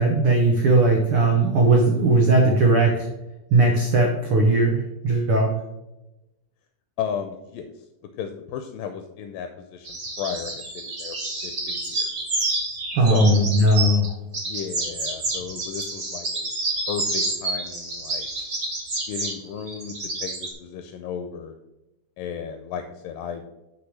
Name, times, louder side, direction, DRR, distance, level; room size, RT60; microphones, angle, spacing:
voice 1, 0.0-3.1 3.5-5.5 12.9-14.1, right 2 dB, 75° right, 0 dB, 1.2 m, -18 dB
voice 2, 7.0-7.8 8.2-11.2 11.4-12.3 13.0-13.6 14.4-16.5 16.9-18.3 19.1-21.5 22.2-23.5, left 8 dB, 80° left, 7 dB, 2.2 m, -34 dB
sound 1, 9.8-14.1 14.3-20.5, right 2 dB, 40° right, 1.5 m, -29 dB
6.1 x 5.9 x 6.3 m, 0.97 s
omnidirectional pair, 4.2 m